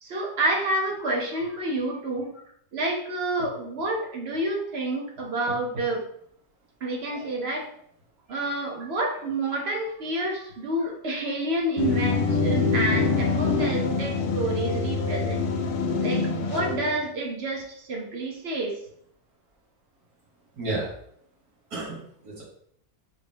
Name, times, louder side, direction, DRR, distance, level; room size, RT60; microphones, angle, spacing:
voice 1, 0.0-2.4 2.7-6.0 6.8-7.7 8.3-15.4 16.0-18.8, right 1 dB, 55° right, 1 dB, 0.8 m, -29 dB
sound 1, 11.8-17.0, left 4 dB, 80° left, 1.1 m, -25 dB
voice 2, 20.5-20.9 21.7-22.4, right 2 dB, 85° right, -6 dB, 2.0 m, -32 dB
4.7 x 2.0 x 3.7 m, 0.67 s
omnidirectional pair, 1.6 m